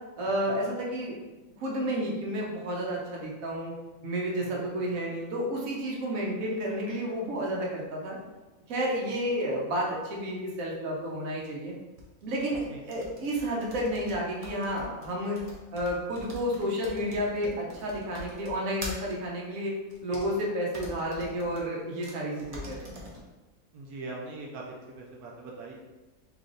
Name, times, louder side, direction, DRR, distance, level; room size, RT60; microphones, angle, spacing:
voice 1, 0.2-1.1 1.6-3.7 4.0-8.2 8.7-11.8 12.2-15.4 15.7-19.8 20.0-22.9, equal, 65° right, -2 dB, 1.2 m, -31 dB
voice 2, 4.4-4.9 12.7-12.8 23.7-25.7, right 2 dB, 90° right, -2 dB, 1.2 m, -42 dB
sound 1, 12.0-19.2 19.9-20.3 20.7-21.6 22.0-22.1 22.4-23.2, equal, 40° right, 0.5 m, -43 dB
3.3 x 2.9 x 3.8 m, 1.2 s
omnidirectional pair, 1.6 m